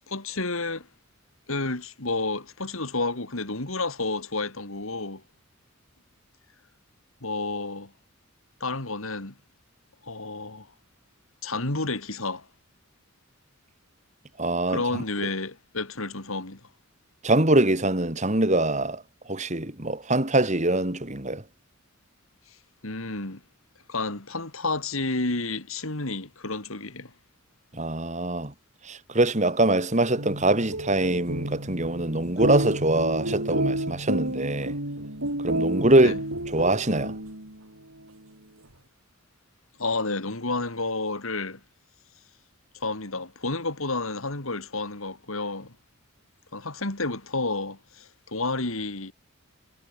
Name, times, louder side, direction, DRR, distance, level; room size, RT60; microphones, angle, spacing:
voice 1, 0.1-0.9 1.5-5.2 7.2-7.9 8.6-9.4 10.0-10.7 11.4-12.5 14.7-16.6 22.8-23.4 23.9-27.1 36.0-36.2 39.8-41.6 42.7-45.7 46.5-49.1, left 3 dB, 70° left, 3.0 m, -30 dB
voice 2, 14.4-14.8 17.2-19.0 19.3-21.4 27.7-28.5 28.9-34.7 35.4-36.1 36.5-37.1, right 2 dB, 35° right, 2.7 m, -23 dB
sound 1, 30.1-37.6, right 1 dB, 75° right, 6.7 m, -31 dB
head